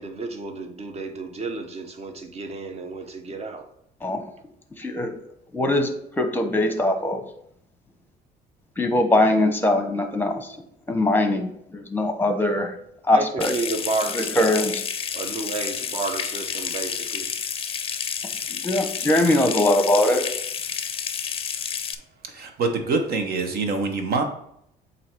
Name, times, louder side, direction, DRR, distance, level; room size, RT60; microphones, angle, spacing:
voice 1, 0.0-3.7 13.1-14.7 15.1-17.3, right 3 dB, 40° right, 0.9 m, -31 dB
voice 2, 4.8-5.1 5.5-5.9 6.2-7.2 8.8-10.5 10.9-12.7 13.1-13.5 14.4-14.8 18.5-20.2, left 1 dB, 10° left, 0.9 m, -21 dB
Water tap faucet / Sink (filling or washing) / Trickle dribble, 13.4-22.0, left 7 dB, 35° left, 0.5 m, -30 dB
voice 3, 22.3-24.2, right 3 dB, 65° right, 1.1 m, -25 dB
7.6 x 2.8 x 4.5 m
cardioid pair, 110°, 17 cm